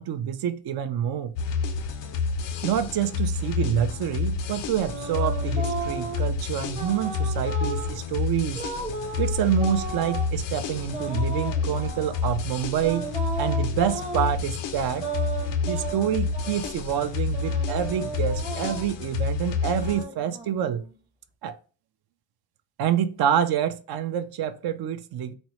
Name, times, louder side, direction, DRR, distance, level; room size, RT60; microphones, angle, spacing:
voice 1, 0.0-1.3 2.6-8.6 9.2-13.1 13.4-15.1 15.6-20.8 21.4-21.6 22.8-25.3, right 9 dB, 65° right, 0.5 m, -27 dB
sound 1, 1.4-20.0, left 5 dB, 90° left, 0.6 m, -29 dB
sound 2, 3.9-6.3 6.7-8.0 8.6-10.3 10.9-12.2 12.8-14.3 14.9-16.8 17.3-18.9 19.5-20.9, right 3 dB, 15° right, 0.6 m, -35 dB
4.1 x 2.0 x 2.9 m
cardioid pair, 125°, 41 cm